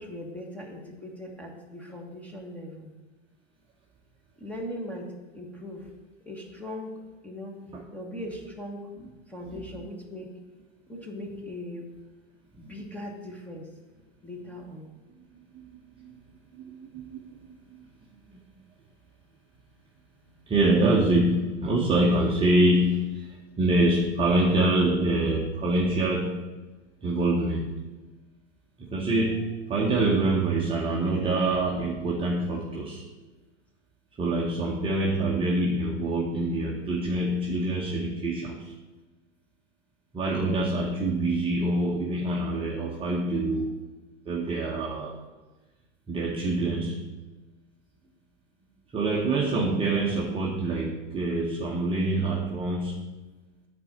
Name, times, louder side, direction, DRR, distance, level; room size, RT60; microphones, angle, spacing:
voice 1, 0.0-2.9 4.4-5.9 6.2-6.9 7.2-7.6 7.9-8.9 9.3-10.3 10.9-11.9 12.6-13.7 14.2-14.9, left 1 dB, 5° left, -1 dB, 1.4 m, -39 dB
voice 2, 15.5-16.1 16.6-17.4 20.5-26.5 27.0-27.8 28.8-33.0 34.2-38.7 40.1-43.8 44.3-45.2 46.1-47.1 48.9-53.2, right 2 dB, 15° right, -4 dB, 0.9 m, -25 dB
8.5 x 4.3 x 7.2 m, 1.2 s
supercardioid pair, 135°, 34 cm